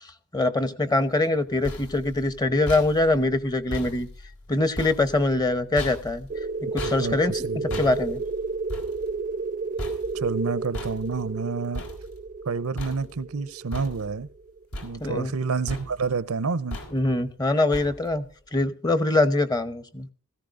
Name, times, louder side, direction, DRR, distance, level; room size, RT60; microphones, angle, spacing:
voice 1, 0.3-4.1 4.5-6.3 6.7-7.5 7.8-8.2 15.0-15.3 16.9-18.2 18.5-20.1, left 2 dB, 20° left, 0.9 m, -23 dB
sound 1, 1.3-12.5 12.8-13.4 13.7-14.4 14.7-15.4 15.7-16.2 16.7-17.3 17.7-18.3, left 1 dB, 75° left, 3.9 m, -39 dB
sound 2, 6.3-14.6, right 3 dB, 35° right, 0.5 m, -32 dB
voice 2, 6.8-7.9 10.1-11.8 12.5-14.3 14.8-16.8, right 4 dB, 85° right, 0.7 m, -29 dB
17.0 x 15.0 x 2.6 m
head